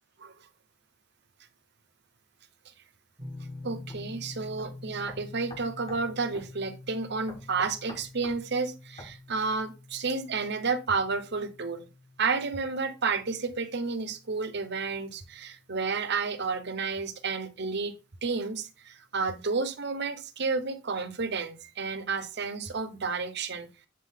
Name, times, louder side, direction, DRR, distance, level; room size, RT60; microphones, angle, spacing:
sound 1, 3.2-16.1, left 2 dB, 20° right, 1.8 m, -47 dB
voice 1, 3.6-11.9 12.2-17.9 18.2-23.7, right 4 dB, 60° right, 1.0 m, -31 dB
sound 2, 3.9-4.0 4.6-4.7 5.1-6.1 6.3-6.5 7.3-8.4 9.0-9.1, left 1 dB, 30° left, 1.9 m, -46 dB
10.5 x 3.8 x 3.8 m
head